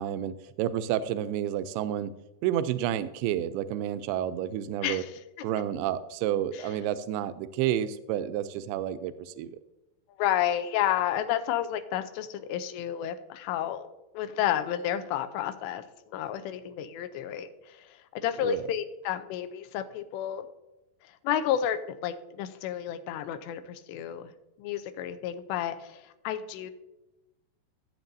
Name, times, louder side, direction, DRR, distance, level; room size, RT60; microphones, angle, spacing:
voice 1, 0.0-2.1 2.4-5.0 5.4-9.6 18.4-18.7, right 11 dB, 85° right, 12 dB, 2.4 m, -30 dB
voice 2, 4.8-5.2 6.5-6.7 10.2-13.9 14.1-20.5 21.2-24.3 24.6-26.7, left 10 dB, 90° left, 10 dB, 2.9 m, -31 dB
15.0 x 7.8 x 2.7 m, 0.97 s
omnidirectional pair, 4.9 m